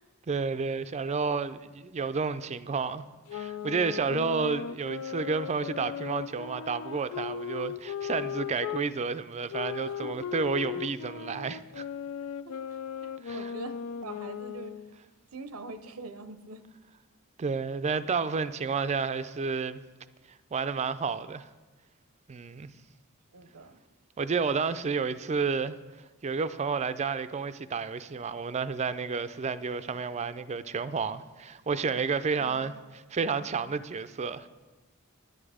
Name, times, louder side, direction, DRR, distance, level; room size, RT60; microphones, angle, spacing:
voice 1, 0.3-3.1 3.3-11.8 13.2-13.5 17.4-19.8 20.5-21.5 22.3-22.7 24.2-25.8 26.2-32.7 33.1-34.5, right 5 dB, 30° right, 0.4 m, -31 dB
sound 1, 3.3-8.9 9.5-15.0, left 8 dB, 85° left, 0.4 m, -37 dB
voice 2, 9.9-10.3 12.4-13.7 14.0-14.8 15.3-16.6 23.3-23.8 32.4-32.7, right 3 dB, 90° right, 0.7 m, -44 dB
10.5 x 10.0 x 4.9 m
head